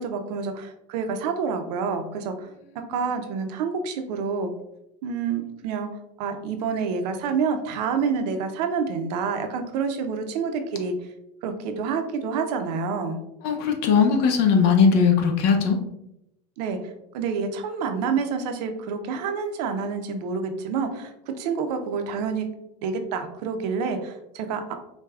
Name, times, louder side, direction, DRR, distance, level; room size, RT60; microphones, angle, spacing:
voice 1, 0.0-2.5 2.9-4.5 5.0-5.9 6.2-10.9 11.4-13.2 16.6-16.8 17.1-22.5 22.8-24.7, right 5 dB, 70° right, 6 dB, 0.6 m, -28 dB
voice 2, 13.4-15.8, left 6 dB, 55° left, 4 dB, 0.7 m, -19 dB
4.7 x 2.2 x 2.3 m, 0.85 s
supercardioid pair, 120°, 21 cm